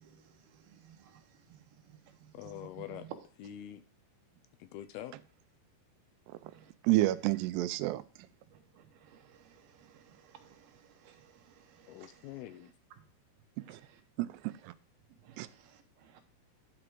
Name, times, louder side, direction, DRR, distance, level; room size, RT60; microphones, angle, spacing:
voice 1, 0.0-0.3 0.8-1.2 1.5-1.6 1.9-2.0 6.4-6.7 8.5-12.0 13.7-13.8 15.2-16.2, right 9 dB, 70° right, 2.8 m, -60 dB
voice 2, 2.3-3.1 3.4-3.8 4.6-5.2 11.9-12.7, left 12 dB, 80° left, 2.4 m, -45 dB
voice 3, 6.8-8.0 13.7-13.8 14.2-14.7 15.4-15.5, right 17 dB, 90° right, 2.7 m, -30 dB
11.5 x 5.0 x 4.7 m
omnidirectional pair, 4.8 m